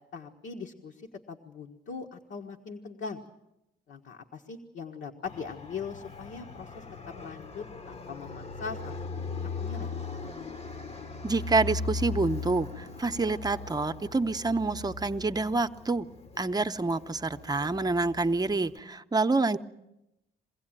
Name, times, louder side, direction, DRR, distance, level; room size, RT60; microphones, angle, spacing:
voice 1, 0.1-3.2 3.9-9.0 9.4-9.9, left 5 dB, 70° left, 2 dB, 1.5 m, -41 dB
Fixed-wing aircraft airplane, 5.3-18.8, left 4 dB, 30° left, 1.0 m, -39 dB
voice 2, 11.2-16.1 16.4-19.6, right 3 dB, 20° right, 9 dB, 0.8 m, -27 dB
23.0 x 16.0 x 9.0 m, 0.92 s
cardioid pair, 90°, 20 cm